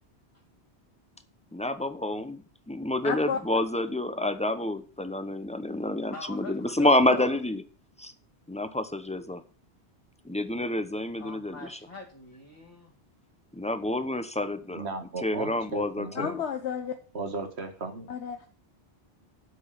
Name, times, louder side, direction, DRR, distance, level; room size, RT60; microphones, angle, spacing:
voice 1, 1.5-7.6 8.0-8.1 8.5-9.4 10.2-11.8 13.5-14.9 15.2-16.4, left 1 dB, 5° left, 10 dB, 0.8 m, -28 dB
voice 2, 3.0-3.4 16.2-16.9 18.1-18.4, left 7 dB, 85° left, 6 dB, 1.1 m, -31 dB
voice 3, 6.1-7.4 11.2-13.0, left 3 dB, 30° left, -3 dB, 1.9 m, -42 dB
voice 4, 14.7-16.3 17.1-18.1, right 3 dB, 75° right, 7 dB, 1.9 m, -36 dB
8.2 x 6.2 x 7.5 m, 0.39 s
omnidirectional pair, 1.1 m